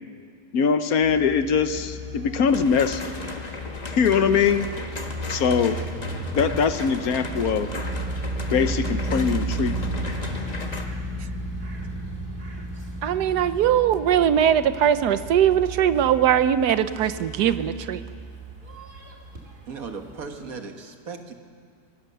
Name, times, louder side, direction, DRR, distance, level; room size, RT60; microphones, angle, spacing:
voice 1, 0.5-3.2 3.9-4.6 5.3-5.8 6.3-7.7 8.5-9.9, left 6 dB, 70° left, 10 dB, 1.3 m, -22 dB
sound 1, 1.0-20.6, right 1 dB, 30° right, 2.2 m, -34 dB
sound 2, 2.5-10.9, left 2 dB, 25° left, 1.4 m, -36 dB
voice 2, 13.0-18.1, right 9 dB, 90° right, 12 dB, 1.3 m, -21 dB
voice 3, 19.7-21.3, right 5 dB, 60° right, 5 dB, 1.9 m, -37 dB
24.0 x 18.5 x 6.8 m, 2.1 s
omnidirectional pair, 1.7 m